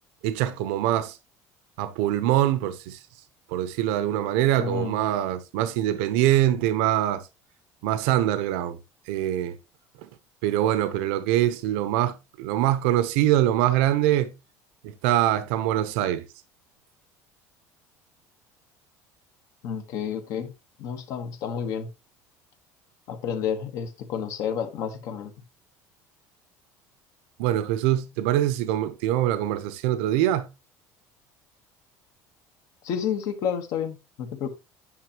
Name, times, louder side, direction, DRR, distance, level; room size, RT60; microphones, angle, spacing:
voice 1, 0.2-1.2 1.8-3.0 3.5-7.2 7.8-8.8 9.1-9.6 10.0-10.1 10.4-14.3 14.8-16.2 27.4-30.5, right 13 dB, 85° right, 0.9 m, -24 dB
voice 2, 4.6-5.0 19.6-20.5 20.8-21.9 23.1-25.3 32.8-34.5, left 7 dB, 55° left, 1.3 m, -30 dB
9.6 x 5.7 x 3.0 m
cardioid pair, 165°, 7 cm